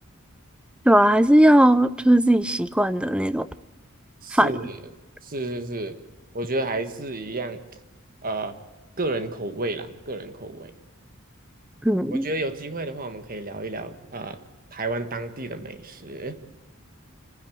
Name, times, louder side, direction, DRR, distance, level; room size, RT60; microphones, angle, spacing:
voice 1, 0.9-3.5 4.3-4.5 11.8-12.3, right 1 dB, 5° right, 0.6 m, -18 dB
voice 2, 4.2-4.8 5.2-6.0 6.3-7.6 8.2-8.6 9.0-10.7 12.1-14.4 14.7-16.4, right 2 dB, 45° right, 1.6 m, -31 dB
28.5 x 10.5 x 9.3 m
head